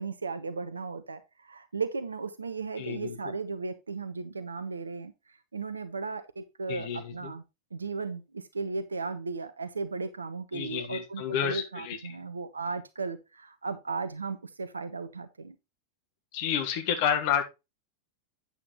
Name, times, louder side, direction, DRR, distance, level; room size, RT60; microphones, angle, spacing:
voice 1, 0.0-7.4 7.7-15.5, right 4 dB, 75° right, 0.7 m, -36 dB
voice 2, 2.8-3.2 6.7-7.1 10.5-12.0 16.3-17.4, left 8 dB, 50° left, 1.5 m, -30 dB
8.7 x 7.2 x 3.1 m
figure-of-eight pair, 90°, 0 cm